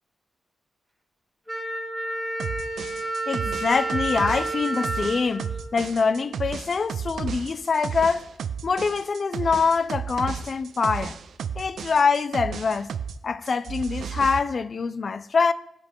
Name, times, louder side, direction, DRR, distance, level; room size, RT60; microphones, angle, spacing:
Wind instrument woodwind instrument, 1.5-6.3, right 2 dB, 5° right, 2.6 m, -31 dB
sound 1, 2.4-13.2 13.5-14.4, right 7 dB, 85° right, 0.5 m, -33 dB
voice 1, 3.3-8.3 8.6-11.2 11.6-12.9 13.2-15.5, left 5 dB, 50° left, 0.4 m, -24 dB
15.5 x 5.3 x 4.5 m
cardioid pair, 100°, 0 cm